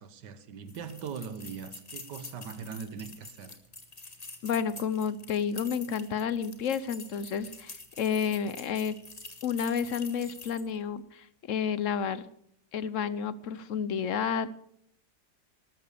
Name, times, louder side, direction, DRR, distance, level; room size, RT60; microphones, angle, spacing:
voice 1, 0.0-3.6, right 6 dB, 80° right, 1.7 m, -41 dB
sound 1, 0.7-10.8, left 3 dB, 25° left, 1.7 m, -47 dB
voice 2, 4.4-9.0 9.4-12.3 12.7-14.5, left 7 dB, 55° left, 1.0 m, -31 dB
13.5 x 12.5 x 6.7 m
omnidirectional pair, 1.8 m